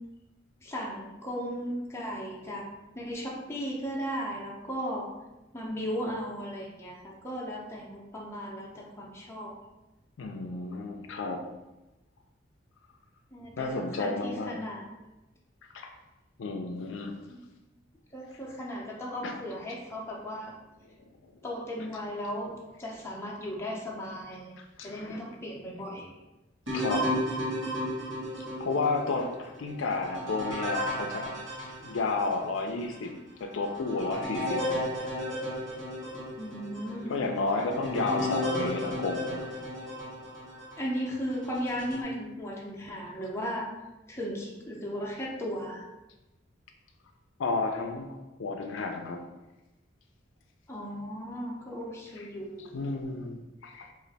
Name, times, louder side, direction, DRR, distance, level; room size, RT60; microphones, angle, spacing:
voice 1, 0.6-2.7 2.9-5.1 5.5-9.6 13.3-14.9 17.3-17.4 18.1-20.5 21.4-24.5 24.8-26.1 36.4-37.1 40.8-43.7 44.1-45.9 50.7-52.8, equal, 15° left, -3 dB, 0.6 m, -36 dB
voice 2, 10.2-11.4 13.6-14.6 15.7-15.9 16.4-17.1 19.2-19.4 21.2-21.3 24.8-25.2 26.7-27.1 28.6-31.4 31.8-33.1 33.4-34.8 37.1-39.4 47.4-48.1 48.4-49.2 52.7-53.9, left 3 dB, 75° left, 4 dB, 0.4 m, -31 dB
sound 1, 26.7-32.4 32.9-33.0 33.6-40.8 41.4-42.0, equal, 75° right, 1.1 m, -34 dB
3.1 x 2.5 x 3.9 m, 1.0 s
head